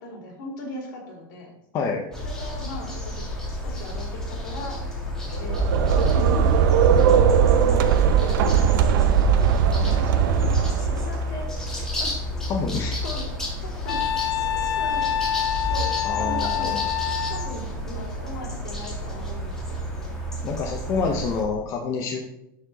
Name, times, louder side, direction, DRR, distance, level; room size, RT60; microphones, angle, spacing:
voice 1, 0.0-1.5 2.2-5.0 5.4-6.6 7.5-11.6 12.0-12.1 13.0-13.3 13.6-15.1 15.7-16.8 17.3-20.2, left 2 dB, 60° left, 0 dB, 2.9 m, -38 dB
voice 2, 1.7-2.0 12.5-13.0 16.0-16.9 20.4-22.2, left 5 dB, 25° left, 1 dB, 0.8 m, -27 dB
sound 1, 2.1-21.4, left 1 dB, 5° left, 1.6 m, -30 dB
sound 2, 5.2-11.2, right 8 dB, 70° right, 0.7 m, -19 dB
Wind instrument woodwind instrument, 13.9-17.5, left 10 dB, 85° left, 0.7 m, -26 dB
12.0 x 4.8 x 3.9 m, 0.84 s
supercardioid pair, 175°, 12 cm